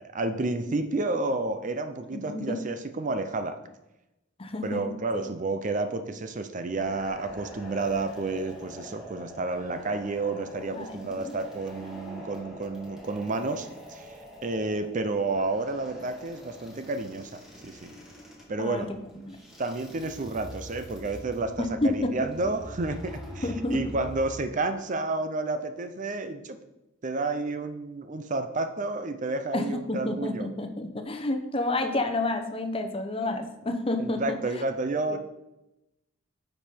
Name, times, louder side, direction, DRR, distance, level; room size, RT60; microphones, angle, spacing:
voice 1, 0.1-3.6 4.6-14.1 14.4-18.0 18.5-18.9 19.6-26.6 27.0-30.5 34.0-35.2, right 3 dB, 40° right, 9 dB, 0.6 m, -30 dB
voice 2, 2.1-2.6 4.4-4.9 5.1-5.3 10.7-11.3 18.6-18.9 19.2-19.4 21.6-22.3 23.4-23.8 29.5-34.4 35.1-35.2, left 2 dB, 30° left, 6 dB, 0.8 m, -30 dB
sound 1, 6.7-24.3, equal, 5° right, 2.0 m, -44 dB
9.6 x 5.4 x 4.4 m, 0.94 s
head